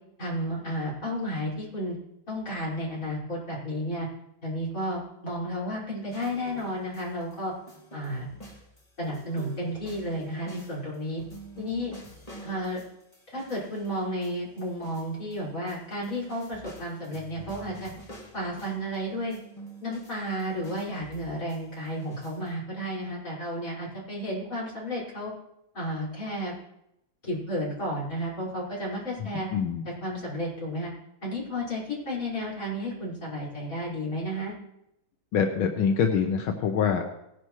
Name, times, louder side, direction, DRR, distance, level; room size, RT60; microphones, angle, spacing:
voice 1, 0.2-1.9 2.3-4.1 4.4-7.5 7.9-8.3 9.0-11.2 11.6-11.9 12.4-12.8 13.3-17.9 18.3-19.3 19.8-25.3 25.7-26.5 27.2-29.5 30.0-30.9 31.2-34.5, equal, 40° left, -6 dB, 5.9 m, -32 dB
sound 1, 6.1-7.4 7.7-15.4 15.7-19.0 19.3-22.5, right 1 dB, 20° left, 2.5 m, -48 dB
voice 2, 29.2-29.9 35.3-37.1, left 6 dB, 85° left, 3 dB, 1.8 m, -25 dB
19.0 x 11.5 x 3.2 m, 0.82 s
omnidirectional pair, 2.1 m